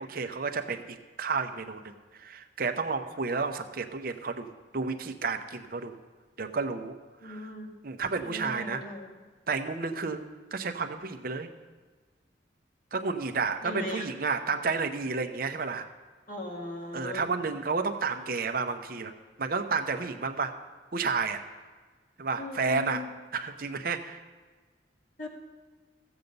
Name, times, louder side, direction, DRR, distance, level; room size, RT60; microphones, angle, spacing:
voice 1, 0.0-4.5 4.7-6.0 6.4-7.0 7.2-7.5 7.8-8.8 9.5-10.2 10.5-11.5 12.9-15.9 16.9-19.1 19.4-20.5 20.9-21.4 22.2-23.0 23.3-24.2, right 4 dB, 55° right, 7 dB, 0.7 m, -31 dB
voice 2, 7.2-7.7 8.1-9.1 13.6-14.1 16.3-17.2 22.4-23.0 25.2-25.3, left 2 dB, 50° left, 0 dB, 2.0 m, -38 dB
14.5 x 7.9 x 5.3 m, 1.4 s
head